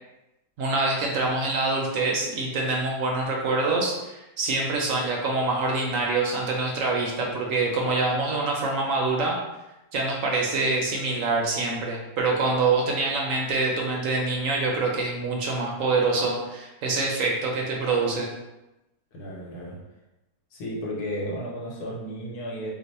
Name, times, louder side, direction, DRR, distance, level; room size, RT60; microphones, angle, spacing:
voice 1, 0.6-9.4 9.9-18.3, right 3 dB, 65° right, -1 dB, 0.9 m, -25 dB
voice 2, 19.1-19.8 20.5-22.7, equal, 85° left, -3 dB, 1.4 m, -33 dB
2.9 x 2.0 x 4.0 m, 0.97 s
omnidirectional pair, 1.6 m